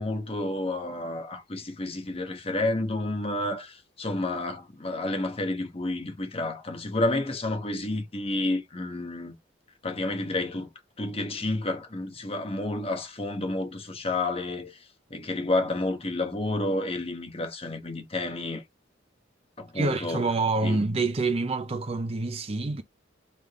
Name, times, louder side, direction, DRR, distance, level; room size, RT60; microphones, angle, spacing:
voice 1, 0.0-9.3 9.8-10.7 11.0-14.8 15.1-18.6 19.6-20.2 20.6-20.8, left 2 dB, 30° left, 1.2 m, -30 dB
voice 2, 19.7-22.8, right 3 dB, 30° right, 0.5 m, -27 dB
3.6 x 3.4 x 3.5 m
head